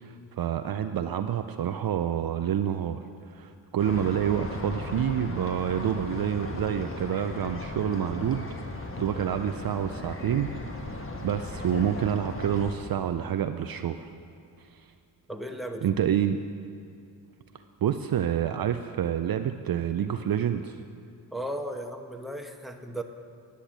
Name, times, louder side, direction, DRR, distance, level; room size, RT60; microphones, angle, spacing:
voice 1, 0.0-3.0 3.3-8.5 9.0-10.5 10.8-14.1 14.8-14.9 15.8-16.4 17.8-20.8, right 9 dB, 50° right, 8 dB, 0.5 m, -28 dB
sound 1, 3.8-12.7, left 2 dB, 30° left, 1.4 m, -37 dB
voice 2, 15.3-15.9 21.3-23.0, right 1 dB, ahead, 4 dB, 1.1 m, -35 dB
10.0 x 8.5 x 7.3 m, 2.5 s
cardioid pair, 60°, 46 cm